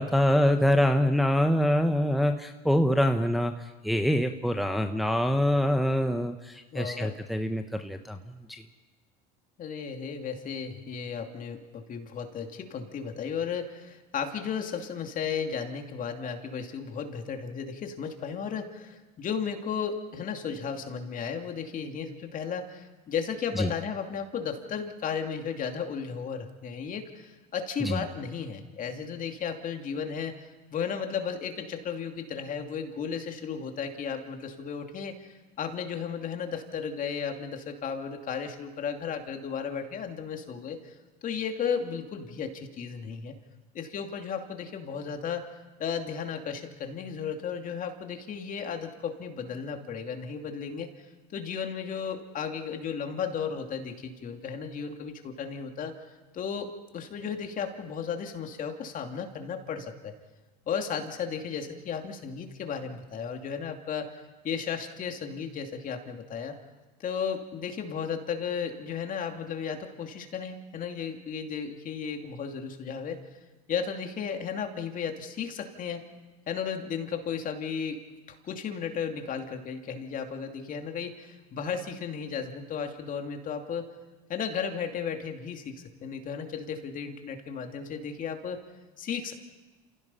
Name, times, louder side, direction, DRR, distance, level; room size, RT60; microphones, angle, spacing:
voice 1, 0.0-8.6 23.6-23.7 27.8-28.0, equal, ahead, 5 dB, 1.0 m, -25 dB
voice 2, 6.7-7.2 9.6-35.3 35.6-40.9 41.2-43.3 43.7-45.5 45.8-50.9 51.3-55.9 56.3-60.1 60.7-64.1 64.4-66.5 67.0-73.2 73.7-76.0 76.5-78.0 78.3-83.9 84.3-88.6 89.0-89.3, left 6 dB, 40° left, 4 dB, 2.7 m, -34 dB
29.0 x 16.5 x 5.6 m, 1.2 s
supercardioid pair, 100°, 21 cm